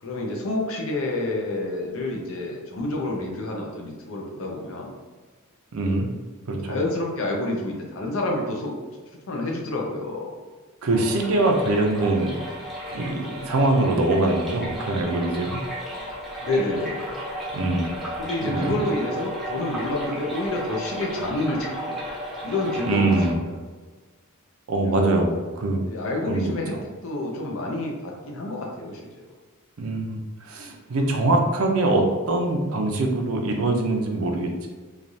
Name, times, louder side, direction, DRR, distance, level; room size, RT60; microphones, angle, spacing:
voice 1, 0.0-4.9 5.8-6.0 6.6-8.8 9.3-10.3 16.4-17.2 18.2-22.0 22.4-23.1 24.9-25.1 25.9-26.7 27.0-29.2, left 2 dB, 65° left, 0 dB, 0.5 m, -28 dB
voice 2, 5.7-6.1 6.5-6.8 10.8-12.3 12.9-15.6 17.5-17.9 18.4-18.7 22.8-23.4 24.7-25.8 26.3-26.8 29.8-34.7, right 2 dB, 75° right, 2 dB, 0.5 m, -23 dB
sound 1, 10.9-23.3, equal, ahead, 0.6 m, -34 dB
3.2 x 2.3 x 2.6 m, 1.4 s
head